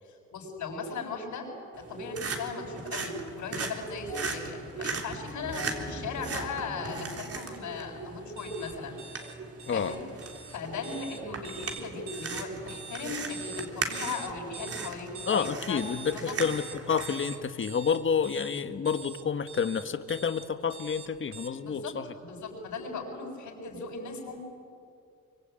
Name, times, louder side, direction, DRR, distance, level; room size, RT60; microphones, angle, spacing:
voice 1, 0.0-1.5 1.7-8.9 9.7-10.0 10.5-15.8 16.1-16.4 21.6-24.4, left 4 dB, 75° left, 0 dB, 7.2 m, -38 dB
sound 1, 1.7-17.3, right 4 dB, 50° right, 3.7 m, -39 dB
sound 2, 3.9-17.2, left 2 dB, 15° left, 3.9 m, -50 dB
sound 3, 8.4-21.5, right 6 dB, 70° right, 2.1 m, -44 dB
voice 2, 9.7-10.0 15.3-22.1, left 6 dB, 40° left, 9 dB, 1.6 m, -29 dB
24.5 x 24.0 x 9.1 m, 2.3 s
cardioid pair, 90°, 30 cm